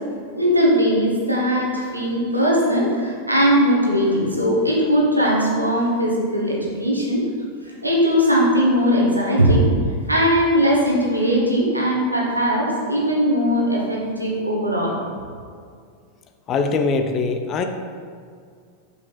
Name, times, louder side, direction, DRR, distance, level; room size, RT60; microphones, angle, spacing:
voice 1, 0.3-7.2 7.8-9.7 10.1-14.9, equal, 85° right, -4 dB, 1.5 m, -19 dB
voice 2, 16.5-17.6, left 4 dB, 30° left, 6 dB, 0.7 m, -22 dB
5.4 x 5.3 x 5.8 m, 2.1 s
figure-of-eight pair, 90°, 0 cm